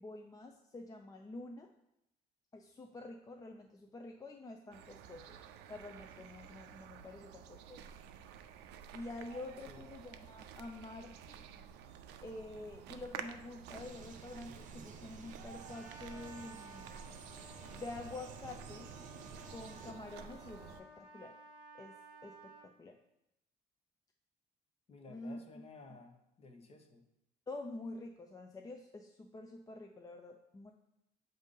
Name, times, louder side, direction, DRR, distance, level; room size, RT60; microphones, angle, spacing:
voice 1, 0.0-1.7 2.5-5.4 5.7-7.9 8.9-11.4 12.2-17.2 17.7-18.9 19.5-21.4 21.7-23.0 25.1-25.6 27.5-30.7, left 2 dB, 20° left, 3 dB, 0.5 m, -48 dB
sound 1, 4.7-20.8, right 8 dB, 90° right, 0.5 m, -51 dB
sound 2, 13.7-19.9, right 6 dB, 50° right, 0.7 m, -54 dB
Trumpet, 15.6-22.7, right 1 dB, 5° right, 2.1 m, -56 dB
voice 2, 24.9-27.0, left 3 dB, 35° left, 5 dB, 0.9 m, -55 dB
7.8 x 2.7 x 5.3 m, 0.85 s
cardioid pair, 110°, 17 cm